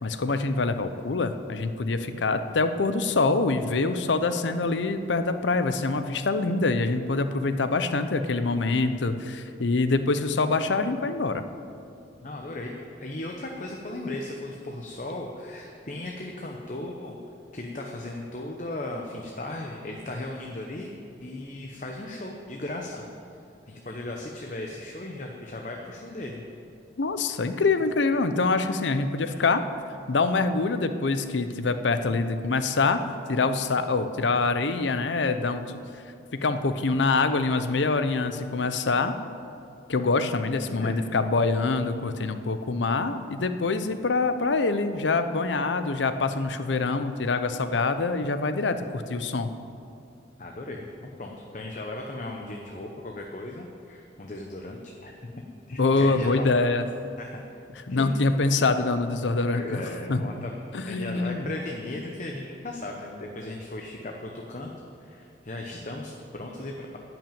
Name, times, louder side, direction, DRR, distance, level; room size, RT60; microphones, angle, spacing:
voice 1, 0.0-11.4 27.0-29.6 30.1-33.0 33.3-35.6 36.3-39.1 39.9-49.5 55.8-56.9 57.9-59.8 60.1-60.2 60.7-61.5, left 3 dB, 80° left, 10 dB, 0.7 m, -25 dB
voice 2, 12.2-12.7 13.0-17.1 17.5-20.9 21.2-23.0 23.7-26.4 29.2-29.5 40.4-41.2 50.4-55.1 55.7-56.8 57.2-57.4 57.9-58.5 59.5-60.5 60.9-64.7 65.0-67.0, left 2 dB, 40° left, 1 dB, 0.9 m, -37 dB
12.0 x 6.0 x 9.0 m, 2.5 s
head